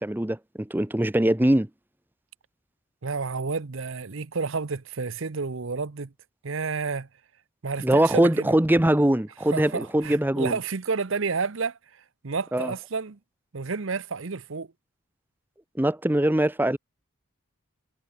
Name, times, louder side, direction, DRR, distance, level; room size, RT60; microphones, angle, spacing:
voice 1, 0.0-1.7 7.8-10.6 12.5-12.7 15.8-16.8, right 1 dB, 10° right, 0.6 m, -22 dB
voice 2, 3.0-6.1 6.4-7.1 7.6-8.5 9.5-13.2 13.5-14.7, right 4 dB, 60° right, 0.8 m, -30 dB
head